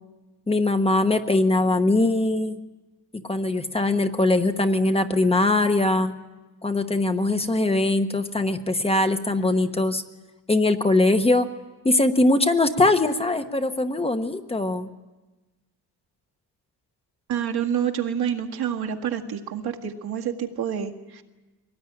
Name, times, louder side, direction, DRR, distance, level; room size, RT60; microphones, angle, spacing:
voice 1, 0.5-2.6 3.3-6.1 6.6-10.0 10.5-11.5 11.8-14.9, left 2 dB, 15° left, 7 dB, 1.0 m, -21 dB
voice 2, 17.3-21.2, right 8 dB, 75° right, 4 dB, 1.9 m, -28 dB
24.0 x 18.5 x 9.9 m, 1.2 s
wide cardioid pair, 180°, 39 cm